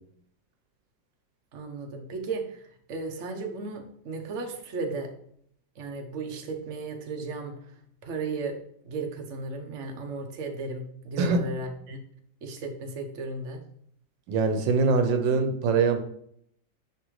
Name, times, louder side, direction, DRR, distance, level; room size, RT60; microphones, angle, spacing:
voice 1, 1.5-5.1 5.8-7.5 8.0-8.6 8.8-12.0 12.4-13.6, right 3 dB, 50° right, 3 dB, 1.1 m, -35 dB
voice 2, 14.3-16.0, right 4 dB, 80° right, 6 dB, 1.5 m, -23 dB
9.9 x 3.3 x 3.1 m, 0.66 s
omnidirectional pair, 2.0 m